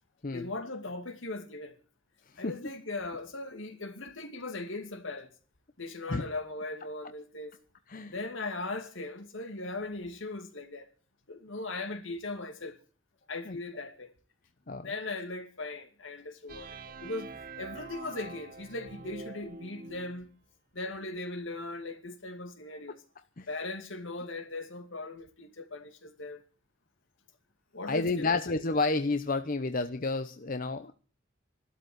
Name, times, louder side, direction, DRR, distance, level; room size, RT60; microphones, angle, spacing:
voice 1, 0.3-1.8 2.4-5.3 5.8-7.6 8.1-10.9 11.3-12.8 13.3-14.1 14.7-20.3 20.7-23.0 23.5-26.4 27.7-28.3, left 2 dB, 75° left, 2.5 m, -39 dB
sound 1, 16.5-20.3, right 3 dB, 45° right, 1.1 m, -45 dB
voice 2, 27.9-30.9, left 3 dB, 45° left, 0.8 m, -30 dB
13.5 x 12.5 x 7.9 m
head